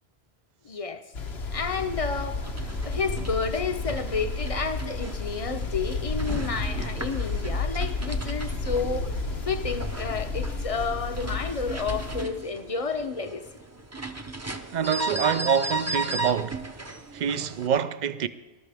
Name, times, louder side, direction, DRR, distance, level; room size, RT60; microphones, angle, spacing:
voice 1, 0.6-1.0 1.5-2.5 2.8-9.1 9.5-13.5, left 5 dB, 35° left, 0.8 m, -30 dB
sound 1, 1.1-12.2, left 3 dB, 75° left, 1.4 m, -32 dB
sound 2, 2.3-17.7, right 2 dB, 15° right, 0.7 m, -36 dB
voice 2, 14.7-16.7 17.1-18.3, right 8 dB, 50° right, 0.6 m, -26 dB
20.0 x 12.5 x 3.5 m
omnidirectional pair, 1.1 m